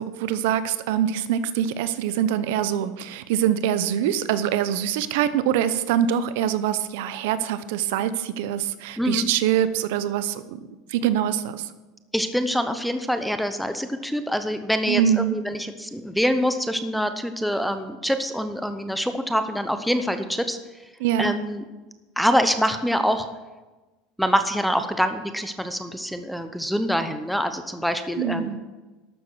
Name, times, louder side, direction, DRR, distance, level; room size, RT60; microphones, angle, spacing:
voice 1, 0.0-11.7 14.9-15.4 21.0-21.3 28.2-28.6, right 10 dB, 75° right, 14 dB, 0.7 m, -24 dB
voice 2, 9.0-9.3 12.1-20.6 21.2-21.6 22.2-23.3 24.2-28.6, equal, ahead, 9 dB, 0.8 m, -25 dB
12.5 x 6.8 x 6.1 m, 1.2 s
supercardioid pair, 120°, 0 cm